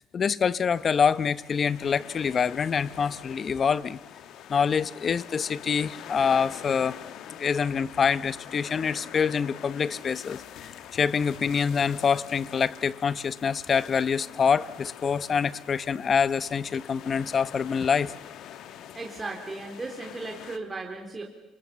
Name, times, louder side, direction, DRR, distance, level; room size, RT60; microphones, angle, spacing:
voice 1, 0.0-4.0 4.5-7.0 7.3-18.1, left 6 dB, 30° left, 0.9 m, -26 dB
sound 1, 0.7-20.6, left 10 dB, 60° left, 1.9 m, -45 dB
voice 2, 18.9-21.2, right 3 dB, 20° right, 3.5 m, -36 dB
28.5 x 26.5 x 7.0 m
cardioid pair, 140°, 0 cm